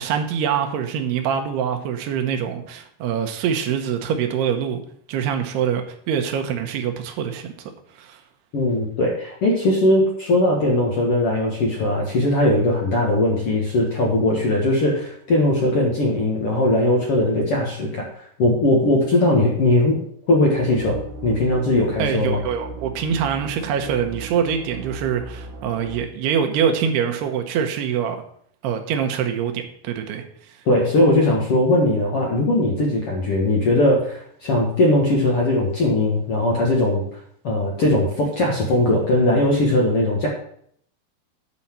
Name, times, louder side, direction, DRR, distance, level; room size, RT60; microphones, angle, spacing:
voice 1, 0.0-4.8 5.1-7.5 8.0-8.2 22.0-28.2 28.6-30.2, right 8 dB, 85° right, 5 dB, 3.0 m, -24 dB
voice 2, 8.5-18.1 18.4-20.0 20.3-22.4 30.7-37.0 37.4-40.3, left 1 dB, 50° left, -2 dB, 1.8 m, -19 dB
sound 1, 20.6-26.0, right 3 dB, 60° right, 2.7 m, -37 dB
9.6 x 4.3 x 7.4 m, 0.63 s
omnidirectional pair, 4.7 m